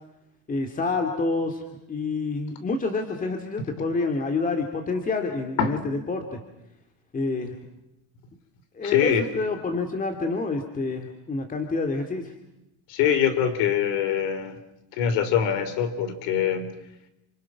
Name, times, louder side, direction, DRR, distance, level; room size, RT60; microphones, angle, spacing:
voice 1, 0.5-1.6 1.9-6.4 7.1-7.6 8.7-12.3, left 3 dB, 20° left, 4 dB, 2.5 m, -28 dB
voice 2, 8.8-9.2 12.9-14.6 15.0-16.7, left 8 dB, 75° left, 10 dB, 3.8 m, -23 dB
29.5 x 26.5 x 6.0 m, 0.89 s
cardioid pair, 130°, 38 cm